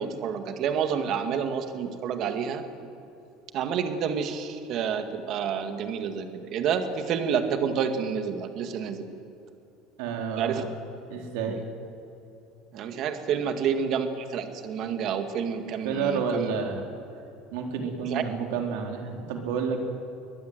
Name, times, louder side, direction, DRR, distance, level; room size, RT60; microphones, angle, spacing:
voice 1, 0.0-2.6 3.5-9.1 10.4-10.6 12.7-16.5 18.1-18.2, right 7 dB, 45° right, 7 dB, 1.9 m, -29 dB
voice 2, 10.0-10.6 11.1-11.6 15.8-16.8 17.5-19.9, right 5 dB, 80° right, 2 dB, 3.9 m, -30 dB
23.0 x 19.5 x 8.0 m, 2.8 s
cardioid pair, 165°, 0 cm